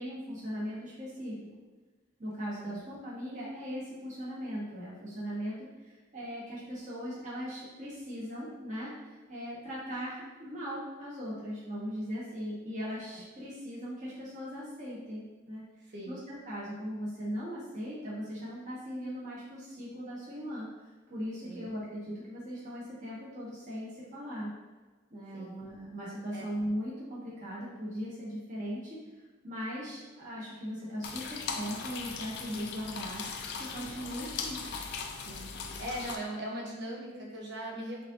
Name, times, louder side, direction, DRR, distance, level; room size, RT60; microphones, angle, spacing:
voice 1, 0.0-1.3 2.2-5.6 5.8-20.7 21.1-24.5 25.1-29.0 29.4-33.2 33.7-34.6, equal, 40° right, -8 dB, 1.3 m, -39 dB
sound 1, 31.0-36.2, left 5 dB, 55° left, 0.5 m, -39 dB
voice 2, 35.2-38.1, right 1 dB, 60° right, -2 dB, 1.0 m, -40 dB
6.1 x 2.8 x 2.6 m, 1.3 s
head